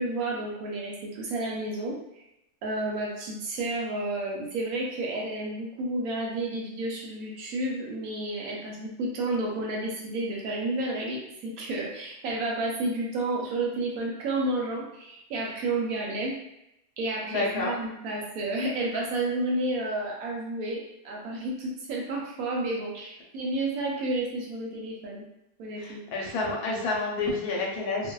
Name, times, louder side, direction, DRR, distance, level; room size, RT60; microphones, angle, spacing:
voice 1, 0.0-2.0 2.6-16.3 17.0-25.2 25.6-26.1, right 2 dB, 70° right, -2 dB, 0.9 m, -31 dB
voice 2, 17.3-17.7 25.8-28.1, left 3 dB, 75° left, -2 dB, 1.0 m, -29 dB
2.5 x 2.1 x 2.2 m, 0.83 s
omnidirectional pair, 1.7 m